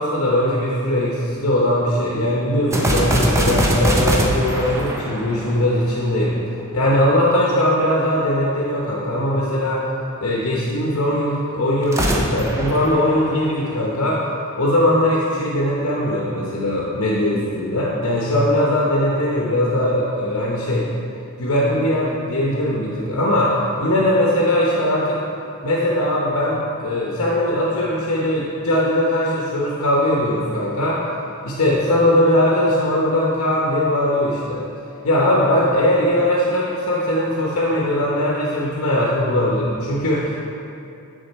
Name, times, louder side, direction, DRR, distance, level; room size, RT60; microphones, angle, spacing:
voice 1, 0.0-6.4 6.7-9.9 10.2-14.2 14.6-20.9 21.4-25.2 25.6-31.0 31.4-34.6 35.0-40.4, left 1 dB, 70° left, -4 dB, 0.8 m, -20 dB
sound 1, 2.7-6.2 11.8-13.9, right 1 dB, 15° right, 0.5 m, -22 dB
9.9 x 3.8 x 4.2 m, 2.6 s
head